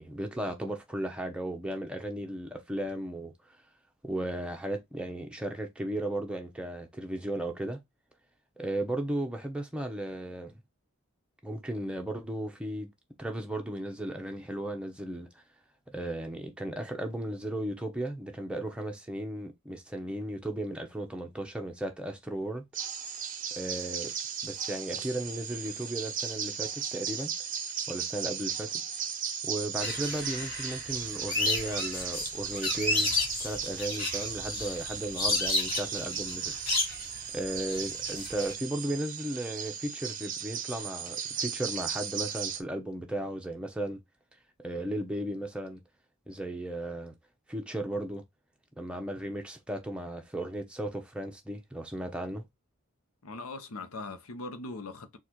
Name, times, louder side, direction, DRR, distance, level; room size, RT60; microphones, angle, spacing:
voice 1, 0.0-3.3 4.0-7.8 8.6-10.5 11.4-12.9 13.2-15.4 15.9-22.6 23.6-24.1 24.4-27.3 27.9-28.8 29.4-33.1 33.4-36.5 37.3-44.0 44.6-45.8 46.3-47.1 47.5-48.2 48.8-52.4, right 1 dB, 5° right, 0.8 m, -35 dB
sound 1, 22.7-42.6, right 7 dB, 40° right, 0.7 m, -36 dB
sound 2, 29.8-38.5, left 2 dB, 45° left, 1.7 m, -32 dB
voice 2, 53.2-55.2, left 3 dB, 90° left, 0.8 m, -40 dB
4.2 x 2.4 x 4.5 m
head